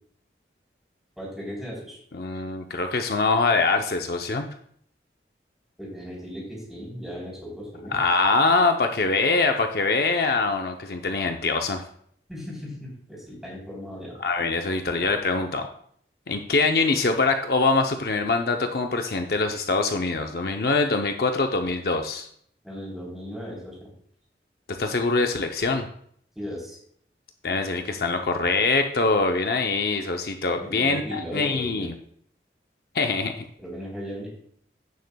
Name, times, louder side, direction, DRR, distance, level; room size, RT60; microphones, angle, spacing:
voice 1, 1.2-2.0 5.8-8.0 12.3-14.1 22.6-23.9 26.4-26.8 30.6-31.9 33.6-34.3, equal, ahead, -5 dB, 3.4 m, -36 dB
voice 2, 2.1-4.5 7.9-11.8 14.2-15.7 16.3-22.3 24.8-25.9 27.4-31.9 32.9-33.3, left 3 dB, 60° left, 5 dB, 0.6 m, -24 dB
16.0 x 6.7 x 2.3 m, 0.63 s
head